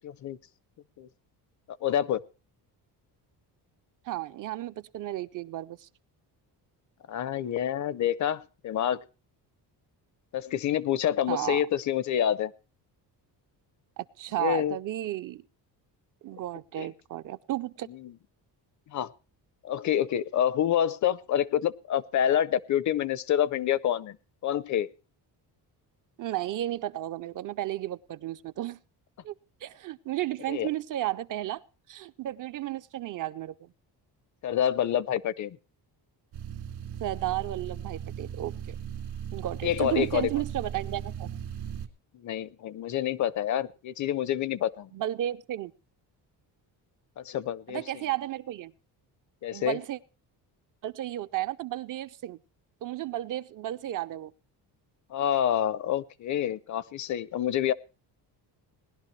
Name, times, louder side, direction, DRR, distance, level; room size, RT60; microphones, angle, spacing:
voice 1, 0.0-0.4 1.0-1.1 1.8-2.2 7.1-9.0 10.3-12.5 14.4-14.8 16.8-16.9 18.9-19.1 19.6-24.2 24.4-24.9 30.5-30.7 34.4-35.6 39.6-40.3 42.2-44.9 47.2-47.8 49.4-49.8 55.1-57.7, left 10 dB, 45° left, 0.5 m, -27 dB
voice 2, 4.1-5.9 11.3-11.6 14.0-15.4 16.2-17.9 26.2-28.8 29.2-29.3 29.6-31.6 31.9-33.7 37.0-38.8 39.3-41.3 44.9-45.7 47.7-48.7 49.5-50.0 50.8-52.4 52.8-54.3, right 14 dB, 50° right, 0.5 m, -33 dB
sound 1, 36.3-41.9, right 9 dB, 70° right, 2.2 m, -38 dB
20.0 x 11.5 x 3.2 m
cardioid pair, 170°, 41 cm